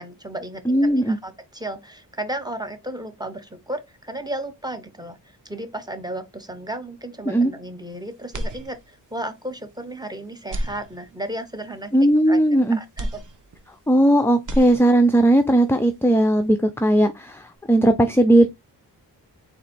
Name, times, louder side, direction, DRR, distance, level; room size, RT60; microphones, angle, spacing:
voice 1, 0.0-12.4 12.7-13.2, right 1 dB, 10° right, 1.0 m, -34 dB
voice 2, 0.7-1.2 7.3-7.5 11.9-12.8 13.9-18.5, right 1 dB, 5° left, 0.5 m, -17 dB
sound 1, 8.3-9.2 9.7-9.8 10.4-11.5 13.0-14.1 14.3-15.3, equal, 45° right, 0.9 m, -32 dB
4.1 x 2.7 x 4.2 m
cardioid pair, 65°, 42 cm